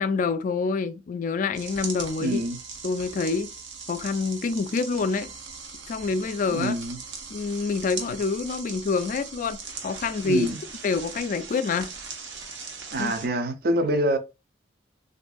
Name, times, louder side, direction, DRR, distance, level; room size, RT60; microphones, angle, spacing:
voice 1, 0.0-2.4 2.8-3.5 3.9-5.3 5.9-6.7 7.3-9.6 9.8-10.5 10.8-11.9 13.0-13.1, left 4 dB, 45° left, 0.3 m, -26 dB
sound 1, 1.5-13.3, right 5 dB, 80° right, 0.8 m, -39 dB
voice 2, 2.2-2.6 6.5-7.0 10.2-10.6 12.9-14.2, right 1 dB, 55° right, 0.5 m, -25 dB
3.4 x 2.5 x 2.3 m
head